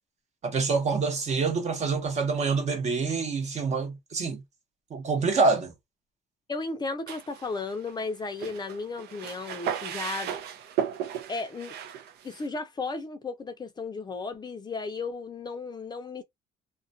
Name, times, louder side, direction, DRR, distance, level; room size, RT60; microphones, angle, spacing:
voice 1, 0.4-4.4 4.9-5.7, right 4 dB, 40° right, 0.9 m, -26 dB
voice 2, 6.5-10.4 11.3-11.8 12.2-16.2, left 3 dB, 25° left, 0.5 m, -34 dB
sound 1, 7.1-8.1 8.4-12.5, right 8 dB, 75° right, 0.5 m, -35 dB
2.4 x 2.2 x 2.4 m
cardioid pair, 110°, 17 cm